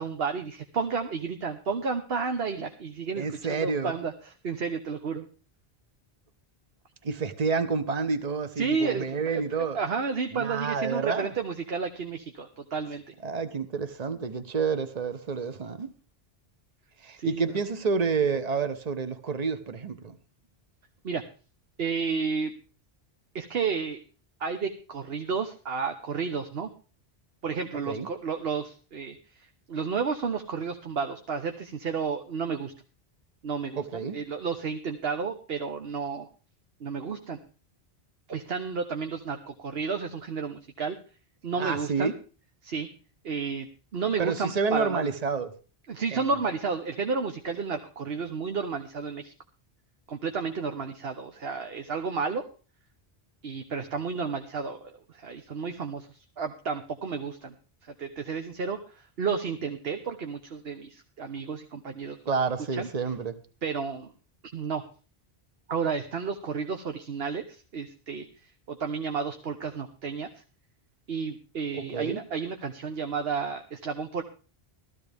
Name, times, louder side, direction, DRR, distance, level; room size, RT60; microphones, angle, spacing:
voice 1, 0.0-5.3 8.6-9.1 9.3-9.4 9.7-13.0 17.2-17.6 21.0-21.2 21.8-22.5 23.3-24.0 24.4-26.7 27.4-32.7 33.4-36.3 36.8-37.4 38.3-41.0 41.4-42.1 42.6-42.9 43.2-43.7 43.9-45.1 45.9-49.3 50.1-52.4 53.4-57.5 58.0-62.2 62.7-62.9 63.6-64.1 64.5-64.8 65.7-68.3 68.7-70.4 71.1-74.2, right 5 dB, 65° right, 1.2 m, -32 dB
voice 2, 3.2-3.9 7.0-9.8 10.3-11.3 13.2-15.9 17.0-20.2 27.9-28.1 33.8-34.2 41.6-42.1 44.2-45.5 46.1-46.4 62.3-63.4 71.7-72.2, right 5 dB, 40° right, 1.1 m, -29 dB
15.5 x 13.5 x 3.5 m
omnidirectional pair, 1.1 m